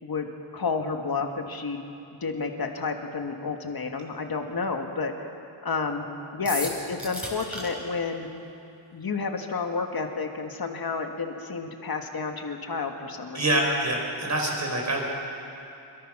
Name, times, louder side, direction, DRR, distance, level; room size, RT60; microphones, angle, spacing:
voice 1, 0.0-1.8 2.2-5.1 5.6-8.3 8.9-13.5, left 4 dB, 45° left, 4 dB, 1.8 m, -30 dB
sound 1, 6.4-7.7, equal, ahead, 5.4 m, -33 dB
voice 2, 13.3-15.1, right 1 dB, 35° right, 0 dB, 4.5 m, -26 dB
27.0 x 22.5 x 6.1 m, 2.7 s
wide cardioid pair, 170°, 48 cm